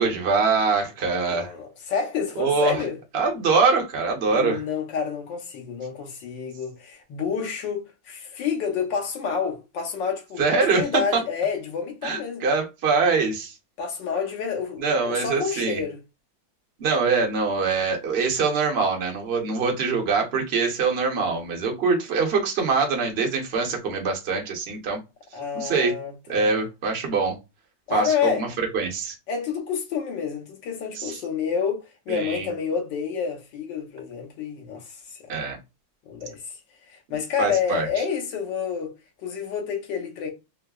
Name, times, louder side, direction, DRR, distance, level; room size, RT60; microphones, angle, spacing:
voice 1, 0.0-1.5 2.4-2.8 3.1-4.6 10.4-10.8 11.1-11.2 12.0-13.5 14.8-15.8 16.8-25.0 25.5-25.9 26.3-27.4 27.9-29.1 31.0-31.2 32.1-32.5 35.3-35.6 37.4-37.9, right 4 dB, 45° right, 0.8 m, -23 dB
voice 2, 1.2-3.0 4.3-10.4 10.7-12.4 13.8-16.0 25.3-26.6 27.9-28.5 29.3-35.3 36.0-36.5 36.9-38.9 39.2-40.3, left 6 dB, 75° left, 1.6 m, -29 dB
4.8 x 2.0 x 2.3 m
omnidirectional pair, 2.0 m